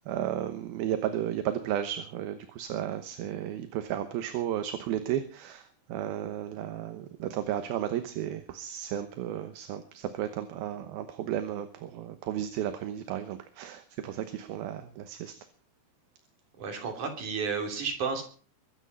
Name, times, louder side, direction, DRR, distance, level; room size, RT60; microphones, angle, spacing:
voice 1, 0.1-15.3, right 11 dB, 70° right, 9 dB, 2.8 m, -33 dB
voice 2, 16.6-18.2, right 5 dB, 50° right, 3 dB, 4.5 m, -32 dB
23.5 x 9.0 x 5.6 m, 0.41 s
omnidirectional pair, 4.8 m